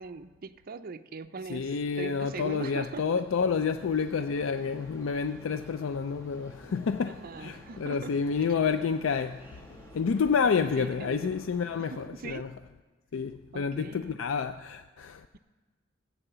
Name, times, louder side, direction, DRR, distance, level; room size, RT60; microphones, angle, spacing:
voice 1, 0.0-3.2 7.1-8.1 10.6-11.4 11.8-12.5 13.5-14.2, right 4 dB, 50° right, 0.5 m, -41 dB
voice 2, 1.5-9.5 9.9-12.5 13.1-15.3, left 6 dB, 85° left, 0.4 m, -29 dB
sound 1, 2.1-4.1 4.4-5.9 6.1-7.9 8.1-11.3, left 1 dB, 10° right, 1.9 m, -57 dB
sound 2, 3.3-12.1, equal, 15° left, 1.3 m, -52 dB
15.0 x 8.2 x 6.8 m
head